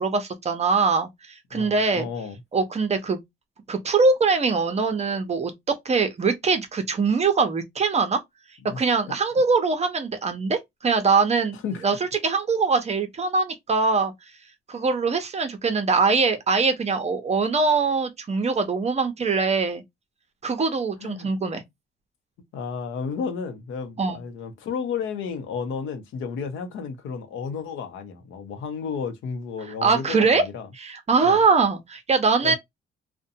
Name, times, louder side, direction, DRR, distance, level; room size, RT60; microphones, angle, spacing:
voice 1, 0.0-2.1 2.5-3.2 3.7-5.5 5.8-8.2 8.8-11.9 12.2-14.1 14.7-19.8 20.4-21.6 24.0-24.2 29.8-30.4 30.8-32.5, right 4 dB, 35° right, 0.7 m, -22 dB
voice 2, 1.5-2.4 8.7-8.8 11.6-11.8 21.0-21.3 22.5-30.7 31.2-31.4 32.4-32.5, left 6 dB, 85° left, 0.7 m, -32 dB
2.5 x 2.2 x 2.6 m
cardioid pair, 90°, 20 cm